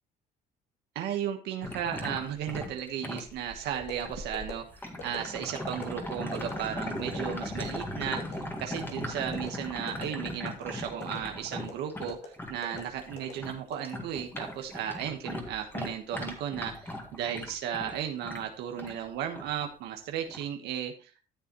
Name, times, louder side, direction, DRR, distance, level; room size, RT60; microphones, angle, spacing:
voice 1, 0.9-21.2, right 9 dB, 80° right, 4 dB, 1.2 m, -35 dB
sound 1, 1.6-13.6 13.8-19.0 19.4-19.7 20.3-20.4, left 1 dB, 10° left, 1.9 m, -38 dB
sound 2, 3.7-4.0 4.3-4.5 5.0-5.2 5.7-5.8 6.3-6.5 7.0-7.2 7.6-7.8 8.2-8.4 8.7-8.9 9.3-9.5 9.9-10.1 10.5-10.7 11.0-11.2 11.5-11.7 12.1-12.3 12.6-12.8 13.2-13.3 13.7-14.4 14.8-15.1, left 5 dB, 75° left, 2.5 m, -42 dB
13.0 x 7.0 x 3.0 m, 0.35 s
cardioid pair, 110°, 17 cm